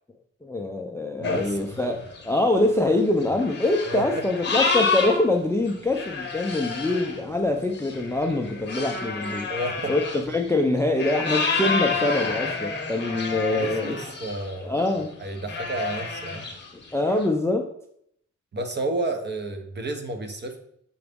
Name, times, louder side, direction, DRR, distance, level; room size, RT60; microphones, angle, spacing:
voice 1, 0.4-2.0 2.2-9.5 9.9-14.0 14.6-15.1 16.9-17.6, left 2 dB, 10° left, 5 dB, 0.3 m, -24 dB
sound 1, 1.2-5.3 5.7-14.5 14.8-15.0 15.4-17.3, left 4 dB, 35° left, 0.8 m, -29 dB
voice 2, 1.2-1.8 3.9-4.0 9.5-9.9 13.1-14.7 15.2-16.4 18.5-20.6, right 2 dB, 35° right, 6 dB, 0.7 m, -31 dB
6.9 x 3.9 x 3.5 m, 0.71 s
wide cardioid pair, 145°, 31 cm